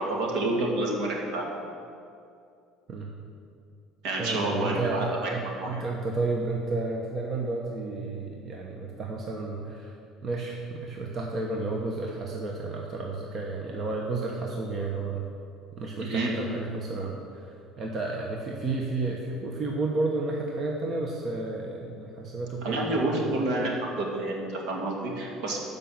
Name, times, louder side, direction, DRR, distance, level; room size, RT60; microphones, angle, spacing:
voice 1, 0.0-1.5 4.0-5.8 16.0-16.3 22.6-23.7 24.0-25.6, right 2 dB, 70° right, -1 dB, 2.3 m, -29 dB
voice 2, 4.2-9.9 10.2-15.3 15.8-23.7, right 3 dB, 35° right, 0 dB, 1.0 m, -32 dB
12.0 x 5.3 x 7.1 m, 2.5 s
cardioid pair, 135°, 0 cm